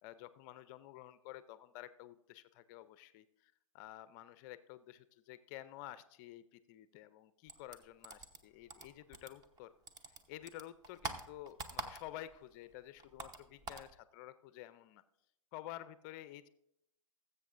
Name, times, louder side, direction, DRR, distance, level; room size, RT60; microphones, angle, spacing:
voice 1, 0.0-9.7 10.1-15.0 15.5-16.5, left 14 dB, 35° left, 14 dB, 0.4 m, -51 dB
sound 1, 7.5-9.6 9.9-12.4 12.6-13.9, right 3 dB, 20° right, 0.9 m, -45 dB
19.5 x 7.8 x 2.5 m, 0.80 s
hypercardioid pair, 120°, 17 cm